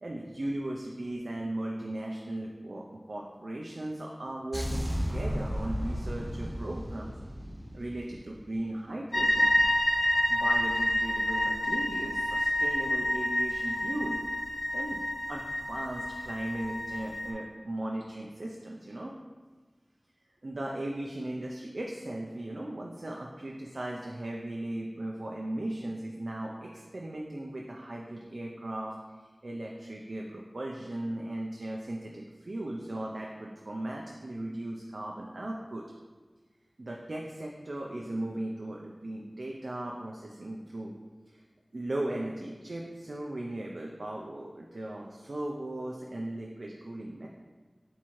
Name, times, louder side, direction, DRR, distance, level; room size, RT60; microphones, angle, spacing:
voice 1, 0.0-7.1 7.7-9.6 10.3-14.2 14.7-15.0 15.3-19.1 20.4-28.9 29.4-35.9 36.8-40.9 41.3-41.4 41.7-47.3, right 1 dB, 75° right, -1 dB, 0.3 m, -37 dB
sound 1, 4.5-8.6, equal, 15° right, 0.6 m, -34 dB
sound 2, 9.1-17.3, left 1 dB, 40° left, 0.5 m, -28 dB
3.6 x 3.0 x 4.2 m, 1.4 s
wide cardioid pair, 60°, 0 cm